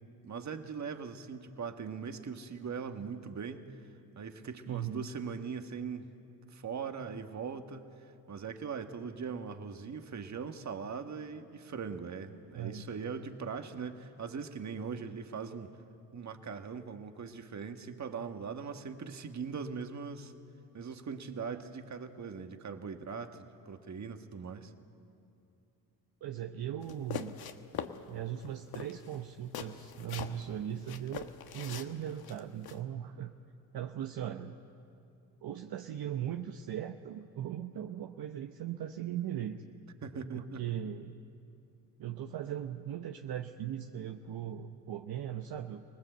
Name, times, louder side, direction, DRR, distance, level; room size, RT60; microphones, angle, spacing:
voice 1, 0.0-3.8 4.2-6.1 6.5-15.7 16.1-20.3 20.7-24.7 40.0-40.6, right 6 dB, 45° right, 7 dB, 1.6 m, -40 dB
voice 2, 4.6-5.0 12.5-12.9 26.2-27.3 28.1-33.3 33.7-34.6 35.4-39.6 40.3-41.1 42.0-45.8, right 10 dB, 65° right, 5 dB, 0.9 m, -39 dB
sound 1, 26.8-28.0 28.4-28.5 28.7-30.5 30.8-32.8, left 8 dB, 65° left, 1.3 m, -42 dB
25.5 x 19.0 x 8.0 m, 2.6 s
cardioid pair, 70°, 39 cm